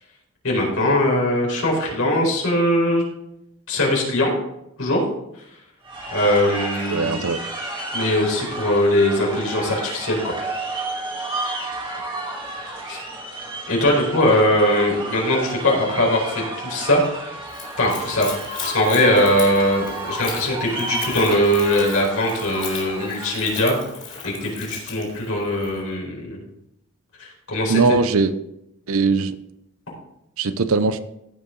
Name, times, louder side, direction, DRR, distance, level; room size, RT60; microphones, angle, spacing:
voice 1, 0.4-3.0 3.7-4.3 4.8-5.0 6.1-7.3 7.9-10.3 12.9-13.0 13.7-17.4 17.8-18.3 18.6-23.8 24.2-26.4 27.2-27.8, left 1 dB, 75° left, -2 dB, 4.5 m, -21 dB
sound 1, 5.8-23.9, right 2 dB, 25° right, 1.7 m, -32 dB
voice 2, 6.9-7.4 27.7-28.3 28.9-29.4 30.4-31.0, right 4 dB, 75° right, 13 dB, 0.7 m, -20 dB
Splash splatter / Trickle dribble, 17.5-25.8, left 6 dB, 35° left, 3.1 m, -37 dB
16.0 x 5.6 x 3.9 m, 0.83 s
head